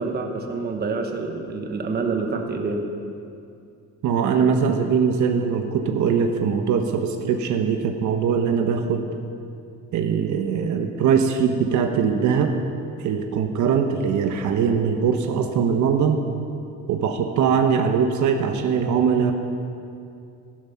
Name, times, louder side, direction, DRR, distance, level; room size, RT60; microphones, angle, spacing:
voice 1, 0.0-2.9, right 4 dB, 30° right, 3 dB, 1.2 m, -27 dB
voice 2, 4.0-9.1 9.9-12.6 13.0-16.2 16.9-19.3, right 6 dB, 65° right, 5 dB, 1.1 m, -21 dB
15.0 x 12.5 x 5.8 m, 2.5 s
cardioid pair, 165°, 31 cm